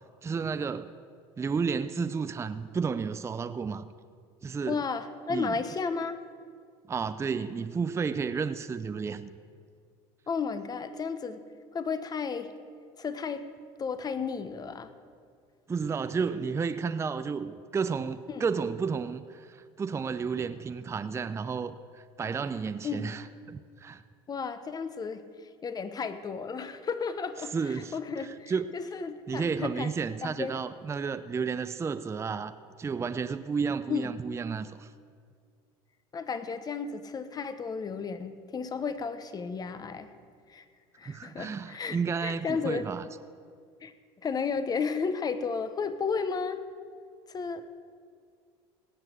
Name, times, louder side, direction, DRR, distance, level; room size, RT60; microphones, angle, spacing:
voice 1, 0.2-0.9 1.4-3.9 4.4-4.8 5.3-5.6 6.9-9.3 15.7-24.0 27.5-28.0 28.5-28.6 29.3-34.9 41.0-43.0, right 5 dB, 20° right, 11 dB, 0.5 m, -32 dB
voice 2, 4.7-6.2 10.3-11.4 11.7-12.5 13.0-13.5 13.8-14.9 18.3-18.4 22.8-23.1 24.3-25.2 25.6-29.9 30.2-30.6 33.9-34.1 36.1-40.1 40.5-40.7 41.0-42.9 43.8-43.9 44.2-46.6 47.3-47.7, left 5 dB, 30° left, 11 dB, 1.0 m, -33 dB
17.5 x 5.9 x 8.2 m, 2.1 s
supercardioid pair, 90°, 13 cm